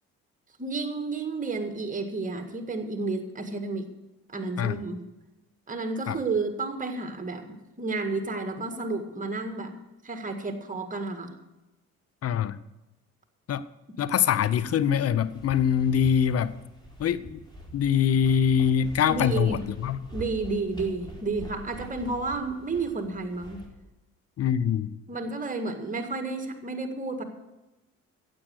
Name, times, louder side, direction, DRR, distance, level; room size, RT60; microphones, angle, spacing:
voice 1, 0.6-3.9 4.3-5.0 5.7-9.8 10.0-11.4 19.1-19.6 20.1-23.6 25.1-27.2, right 3 dB, 20° right, 1.9 m, -31 dB
voice 2, 12.2-12.6 13.5-13.6 14.0-16.5 17.0-17.4 17.7-20.0 24.4-24.9, left 8 dB, 35° left, 0.7 m, -24 dB
sound 1, 15.1-23.6, right 1 dB, 10° left, 4.6 m, -44 dB
15.5 x 7.8 x 6.5 m
figure-of-eight pair, 45°, 41 cm